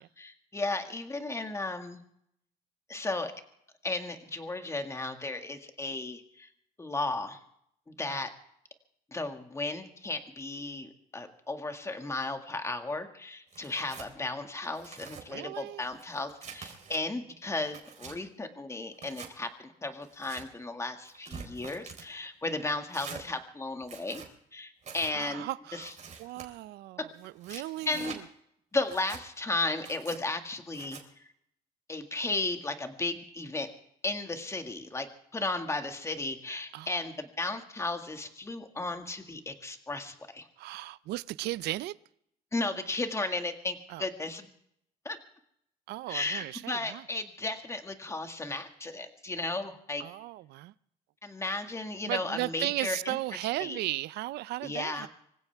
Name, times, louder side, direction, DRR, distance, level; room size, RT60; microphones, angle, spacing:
voice 1, 0.0-2.0 2.9-3.3 3.8-6.5 6.8-7.4 8.0-8.3 9.1-24.2 24.5-25.4 25.7-25.9 27.5-28.2 28.7-31.0 31.9-33.7 34.0-40.5 42.5-44.5 45.0-45.2 46.1-50.0 51.2-53.2 53.6-53.8 54.6-55.1, left 2 dB, 15° left, 2.0 m, -35 dB
Tearing, 13.5-14.1 14.6-15.2 15.8-17.0 17.5-18.2 18.9-19.3 20.0-20.4 21.1-22.1 22.9-23.2 23.8-24.3 24.8-25.1 25.8-26.5 27.2-28.2 28.8-29.2 29.8-30.2 30.7-31.0, right 6 dB, 45° right, 4.1 m, -46 dB
voice 2, 15.3-15.8 25.1-25.9 26.2-28.2 36.7-36.9 40.6-41.9 43.9-44.0 45.9-47.0 50.0-50.7 52.0-55.1, right 17 dB, 80° right, 0.5 m, -36 dB
25.5 x 16.0 x 3.5 m
cardioid pair, 110°, 17 cm